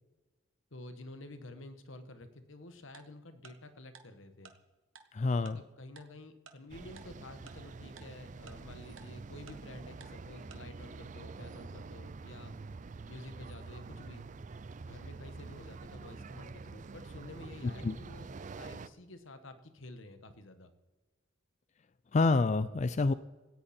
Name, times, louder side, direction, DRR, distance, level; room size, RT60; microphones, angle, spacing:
voice 1, 0.7-4.5 5.4-12.5 13.1-14.2 14.9-20.7, left 2 dB, 75° left, 9 dB, 1.4 m, -50 dB
Tick-tock, 2.9-3.0 3.4-3.5 3.9-4.0 4.4-4.5 5.0-5.1 5.5-5.6 6.0-6.1 6.5-6.6 7.0-7.1 7.5-7.6 8.0-8.1 8.5-8.6 9.0-9.1 9.5-9.6 10.0-10.1 10.5-10.6, right 6 dB, 80° right, 1.6 m, -52 dB
voice 2, 5.1-5.6 17.8-18.0 22.1-23.1, left 3 dB, 35° left, 14 dB, 0.4 m, -27 dB
sound 1, 6.7-18.9, right 4 dB, 40° right, 0.4 m, -47 dB
17.0 x 14.5 x 4.3 m, 1.3 s
head